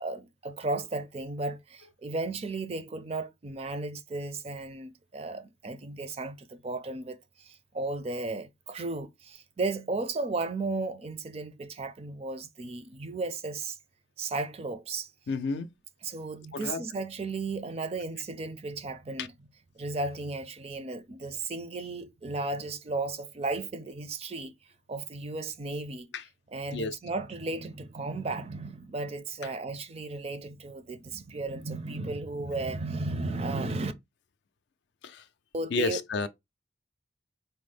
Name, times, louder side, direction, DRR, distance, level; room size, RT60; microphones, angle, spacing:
voice 1, 0.0-13.8 14.2-15.1 16.0-19.3 19.8-24.5 24.9-26.1 26.5-33.9 35.5-36.0, right 3 dB, 30° right, 0.4 m, -34 dB
voice 2, 15.3-15.7 16.5-16.8 19.2-19.3 26.1-26.2 26.7-27.0 29.4-29.5 35.0-35.3 35.7-36.3, left 3 dB, 65° left, 0.4 m, -31 dB
4.2 x 2.0 x 3.3 m
head